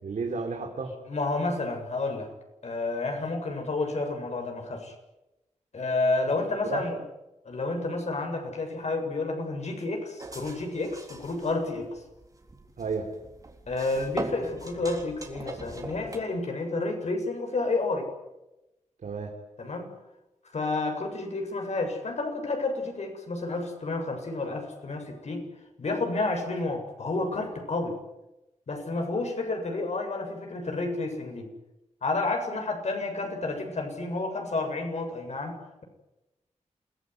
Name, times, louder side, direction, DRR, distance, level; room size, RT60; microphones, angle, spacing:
voice 1, 0.0-1.0 6.6-6.8 12.8-13.1 19.0-19.3, right 4 dB, 85° right, 1 dB, 3.9 m, -32 dB
voice 2, 1.1-2.3 2.6-4.9 5.7-7.0 7.5-12.0 13.7-18.1 19.6-19.9 20.5-25.5 25.8-28.0 28.7-31.5 32.0-35.8, left 3 dB, 65° left, 3 dB, 7.7 m, -30 dB
sound 1, 10.2-16.2, right 2 dB, 30° right, 3.7 m, -41 dB
28.5 x 19.5 x 9.7 m, 0.96 s
wide cardioid pair, 135°, 13 cm